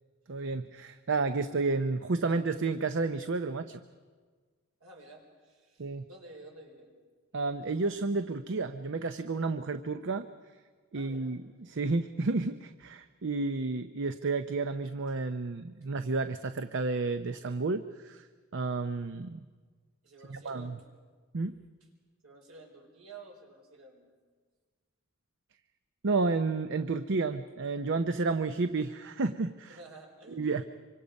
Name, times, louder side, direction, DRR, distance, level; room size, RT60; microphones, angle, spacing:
voice 1, 0.3-3.8 5.8-6.0 7.3-10.2 10.9-18.3 18.5-19.4 20.3-20.7 21.3-21.6 26.0-29.8 30.3-30.6, right 3 dB, 60° right, 10 dB, 0.7 m, -31 dB
voice 2, 4.8-6.9 10.9-11.3 13.4-13.6 20.0-21.0 22.2-24.2 29.7-30.6, right 2 dB, 75° right, 0 dB, 4.8 m, -52 dB
25.5 x 25.0 x 5.3 m, 1.5 s
head